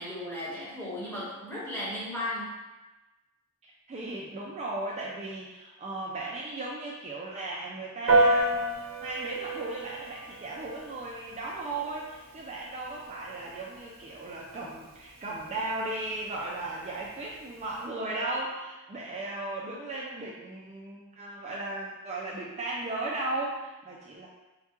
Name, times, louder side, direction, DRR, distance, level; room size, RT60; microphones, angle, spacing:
voice 1, 0.0-2.6, left 1 dB, 10° left, -9 dB, 1.1 m, -35 dB
voice 2, 3.6-24.3, right 2 dB, 30° right, -4 dB, 0.4 m, -36 dB
Piano, 8.1-17.8, right 2 dB, 65° right, 0.6 m, -32 dB
4.6 x 2.2 x 2.9 m, 1.1 s
head